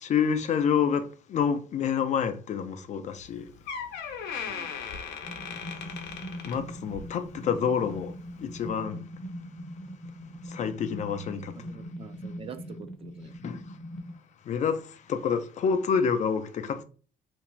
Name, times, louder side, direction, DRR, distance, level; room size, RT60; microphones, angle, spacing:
voice 1, 0.0-3.5 5.9-6.0 6.4-9.0 10.4-11.7 13.4-13.6 14.5-16.8, left 7 dB, 45° left, 0.4 m, -28 dB
Door, 3.2-3.3 3.7-7.2 7.5-7.8 8.5-8.6, left 6 dB, 85° left, 0.6 m, -37 dB
sound 1, 5.2-14.1, equal, ahead, 0.6 m, -41 dB
voice 2, 11.6-13.3, right 7 dB, 35° right, 0.3 m, -45 dB
2.5 x 2.2 x 3.0 m
cardioid pair, 110°, 17 cm